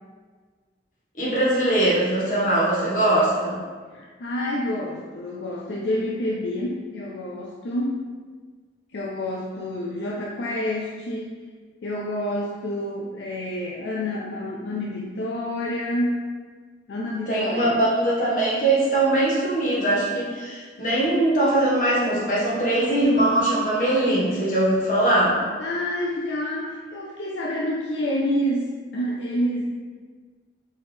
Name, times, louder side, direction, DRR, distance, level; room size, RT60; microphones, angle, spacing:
voice 1, 1.2-3.6 17.3-25.5, right 1 dB, 45° left, -7 dB, 1.2 m, -21 dB
voice 2, 3.9-8.0 8.9-11.3 11.8-16.2 16.9-17.7 25.6-29.6, left 1 dB, 70° left, -3 dB, 0.4 m, -28 dB
4.4 x 3.3 x 3.4 m, 1.5 s
head